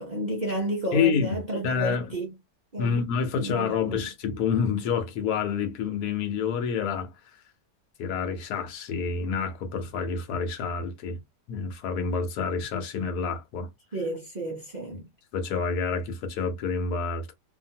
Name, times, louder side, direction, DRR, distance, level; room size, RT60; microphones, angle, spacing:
voice 1, 0.0-2.3 2.7-3.0 3.3-4.1 13.9-15.1, right 1 dB, 60° right, 0.4 m, -32 dB
voice 2, 0.9-1.4 1.6-2.1 2.8-7.1 8.0-11.2 11.5-13.7 15.3-17.3, left 6 dB, 70° left, 1.2 m, -28 dB
2.8 x 2.4 x 2.6 m
omnidirectional pair, 1.8 m